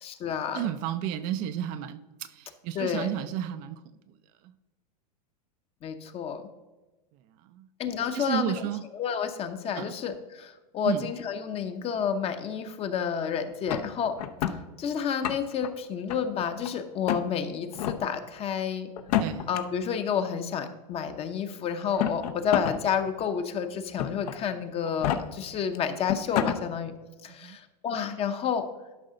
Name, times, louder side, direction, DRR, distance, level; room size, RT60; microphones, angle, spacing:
voice 1, 0.0-0.7 2.7-3.1 5.8-6.5 7.8-8.6 8.9-14.2 14.8-18.9 19.5-26.9 27.2-28.7, left 7 dB, 30° left, 9 dB, 0.8 m, -30 dB
voice 2, 0.5-3.8 7.5-7.7 8.1-8.8 9.8-10.0 10.9-11.1 19.2-19.5 27.3-27.6, right 11 dB, 40° right, 11 dB, 0.5 m, -32 dB
sound 1, 13.7-14.6 15.1-15.7 16.1-16.7 17.0-17.2 17.7-18.0 19.0-19.6 20.6-20.7 21.8-22.8 23.2-23.3 24.0-24.3 24.9-25.2 25.7-25.8 26.1-26.6, left 10 dB, 65° left, 0.8 m, -28 dB
12.0 x 5.5 x 3.8 m, 1.1 s
hypercardioid pair, 125°, 21 cm